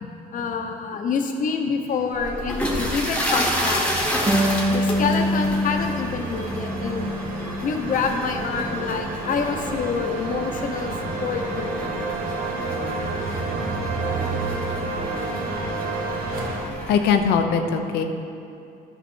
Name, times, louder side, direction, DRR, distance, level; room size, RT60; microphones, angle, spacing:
voice 1, 0.0-3.9 4.7-7.1 7.6-12.0 12.8-12.9 13.9-14.1, left 5 dB, 50° left, 4 dB, 1.0 m, -27 dB
sound 1, 2.0-16.7, right 3 dB, 60° right, 1.3 m, -30 dB
sound 2, 2.1-17.1, equal, 5° left, 1.3 m, -31 dB
Harp, 4.3-7.6 8.0-9.1, left 1 dB, 25° right, 1.0 m, -26 dB
voice 2, 16.9-18.0, left 6 dB, 80° left, 6 dB, 0.8 m, -20 dB
11.0 x 6.1 x 4.5 m, 2.5 s
cardioid pair, 110°, 17 cm